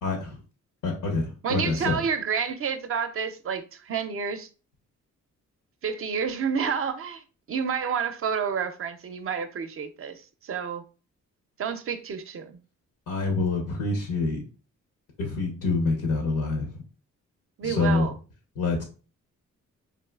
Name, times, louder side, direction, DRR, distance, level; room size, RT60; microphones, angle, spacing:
voice 1, 0.0-0.4 0.8-2.0 13.1-14.4 15.2-16.8 17.6-18.1 18.6-18.8, left 3 dB, 90° left, 0.8 m, -26 dB
voice 2, 1.4-4.5 5.8-7.2 7.5-10.8 11.6-12.6 17.6-18.1, right 6 dB, 45° right, 0.4 m, -29 dB
3.6 x 2.3 x 2.2 m
cardioid pair, 80°, 31 cm